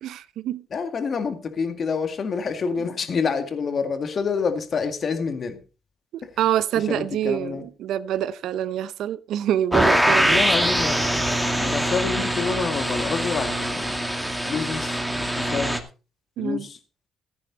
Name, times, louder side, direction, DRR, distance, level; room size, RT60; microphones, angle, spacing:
voice 1, 0.0-0.7 6.1-10.4 16.4-16.7, right 11 dB, 80° right, 0.8 m, -26 dB
voice 2, 0.7-5.6 6.2-6.4 6.8-7.6 10.0-11.0 11.6-14.0 14.5-15.0 15.4-15.7 16.4-16.8, left 5 dB, 50° left, 2.0 m, -27 dB
sound 1, 9.7-15.8, equal, ahead, 2.3 m, -23 dB
14.5 x 9.7 x 4.2 m
cardioid pair, 90°, 0 cm